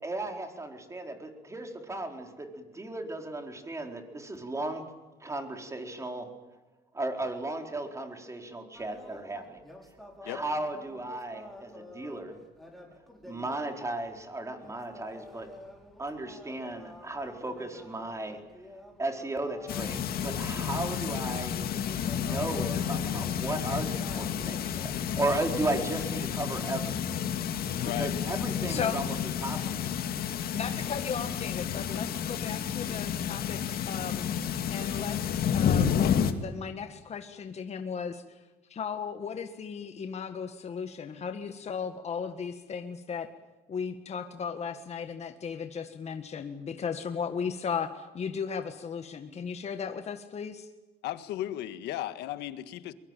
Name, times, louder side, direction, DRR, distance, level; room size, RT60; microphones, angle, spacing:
voice 1, 0.0-4.8 5.2-6.3 6.9-9.6 10.2-12.4 13.2-15.5 16.0-18.4 19.0-21.6 22.1-27.2 28.0-29.9, right 2 dB, 15° right, 5 dB, 4.4 m, -35 dB
sound 1, 8.7-24.9, left 1 dB, ahead, 6.0 m, -49 dB
sound 2, 19.7-36.3, left 8 dB, 65° left, 2.3 m, -30 dB
voice 2, 27.8-28.1 51.0-52.9, left 13 dB, 85° left, 12 dB, 1.7 m, -35 dB
voice 3, 28.7-29.0 30.5-33.6 33.9-34.3 34.7-35.2 35.4-38.2 38.7-43.3 43.7-50.7, left 6 dB, 40° left, 7 dB, 1.7 m, -36 dB
23.0 x 23.0 x 9.1 m, 1.2 s
cardioid pair, 110°, 17 cm